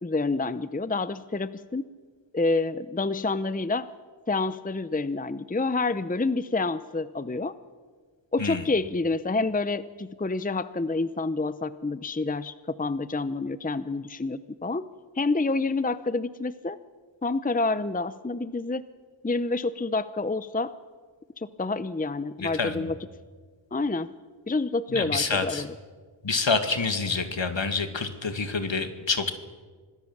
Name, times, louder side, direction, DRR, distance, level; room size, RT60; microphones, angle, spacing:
voice 1, 0.0-1.8 2.3-3.9 4.3-7.5 8.3-14.9 15.2-16.8 17.2-18.8 19.2-20.7 21.4-23.0 23.7-24.1 24.5-25.7, left 3 dB, 15° left, 14 dB, 0.7 m, -28 dB
voice 2, 22.4-22.9 24.9-25.6 26.2-29.3, left 4 dB, 60° left, 8 dB, 2.2 m, -27 dB
26.0 x 19.5 x 7.3 m, 1.6 s
wide cardioid pair, 60°, 50 cm